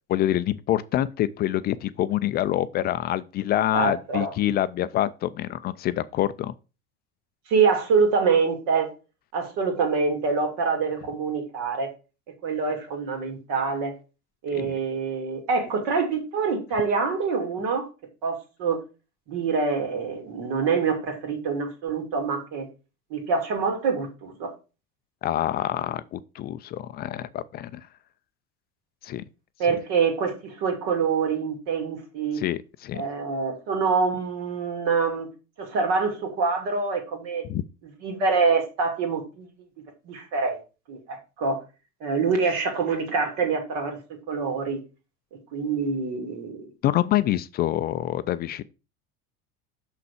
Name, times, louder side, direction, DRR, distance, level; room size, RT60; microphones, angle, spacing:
voice 1, 0.1-6.5 14.5-14.7 25.2-27.8 29.0-29.2 32.4-33.0 37.5-37.6 46.8-48.6, left 13 dB, 25° left, 0.3 m, -26 dB
voice 2, 3.7-4.3 7.5-8.9 9.3-11.9 12.3-13.9 14.4-17.9 18.2-18.8 19.3-22.7 23.1-24.5 29.6-32.4 32.9-35.3 35.6-37.4 38.0-39.5 40.0-40.6 40.9-41.6 42.0-44.8 45.5-46.7, right 5 dB, 55° right, 2.6 m, -25 dB
6.7 x 5.8 x 4.9 m
figure-of-eight pair, 70°, 45 cm